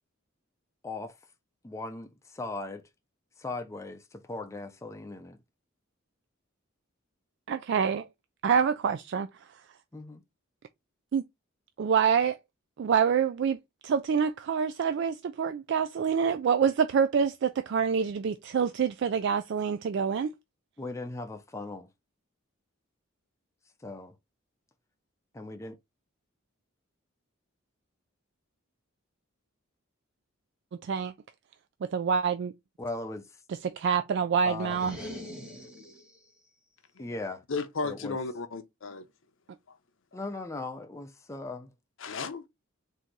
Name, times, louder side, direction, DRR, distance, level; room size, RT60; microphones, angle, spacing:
voice 1, 0.8-1.2 1.6-2.8 3.4-5.4 9.9-10.2 20.8-21.9 23.8-24.1 25.3-25.8 32.8-33.3 34.4-34.8 37.0-37.4 37.8-38.2 40.1-41.7, left 2 dB, 15° left, 0.4 m, -38 dB
voice 2, 7.5-8.1 8.4-9.3 11.1-11.2 11.8-12.4 12.8-13.6 13.8-20.3 30.8-31.1 31.9-32.5 33.5-35.0, right 6 dB, 55° right, 0.3 m, -26 dB
sound 1, 34.6-36.2, left 1 dB, 5° right, 1.3 m, -42 dB
voice 3, 37.5-39.0 42.0-42.4, left 4 dB, 65° left, 0.6 m, -34 dB
3.8 x 2.7 x 4.5 m
head